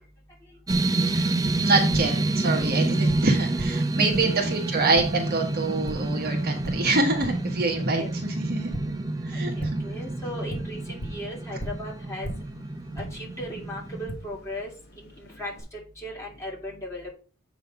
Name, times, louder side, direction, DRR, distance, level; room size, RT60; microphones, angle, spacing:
Tap, 0.7-15.6, equal, 50° left, 2.1 m, -41 dB
sound 1, 0.7-14.1, right 2 dB, 15° right, 0.4 m, -28 dB
voice 1, 1.6-8.9 9.3-9.8, right 3 dB, 45° right, 2 dB, 1.5 m, -26 dB
voice 2, 4.0-4.7 8.0-8.1 9.3-12.3 13.0-14.7 15.0-17.1, equal, 15° left, -3 dB, 2.8 m, -37 dB
8.1 x 3.9 x 5.6 m, 0.38 s
head